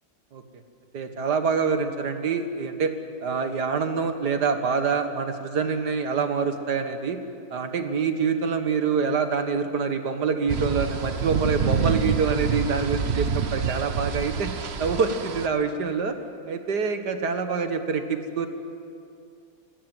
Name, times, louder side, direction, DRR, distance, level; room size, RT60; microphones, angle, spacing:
voice 1, 0.9-2.9 3.2-7.2 7.5-14.5 14.8-16.2 16.5-18.5, right 5 dB, 60° right, 7 dB, 2.1 m, -26 dB
sound 1, 10.5-15.5, right 6 dB, 45° right, 1.0 m, -27 dB
26.0 x 17.5 x 9.2 m, 2.5 s
omnidirectional pair, 2.0 m